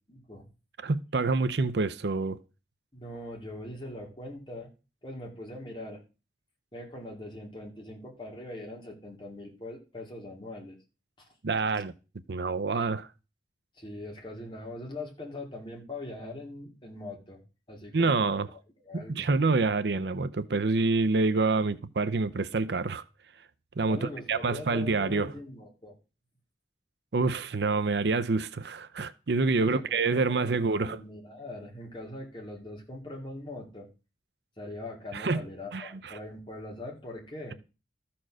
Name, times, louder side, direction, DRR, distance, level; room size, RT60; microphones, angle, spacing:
voice 1, 0.1-0.5 2.9-4.7 5.0-6.0 6.7-10.8 11.2-11.3 13.8-17.4 17.7-19.3 23.8-25.9 29.5-33.9 34.6-37.5, left 1 dB, 30° left, 2.5 m, -42 dB
voice 2, 0.8-2.4 11.4-11.9 12.3-13.1 17.9-18.5 18.9-23.0 23.8-25.3 27.1-31.0 35.1-35.4 35.7-36.2, right 3 dB, 75° right, 0.6 m, -27 dB
13.0 x 4.4 x 6.2 m
head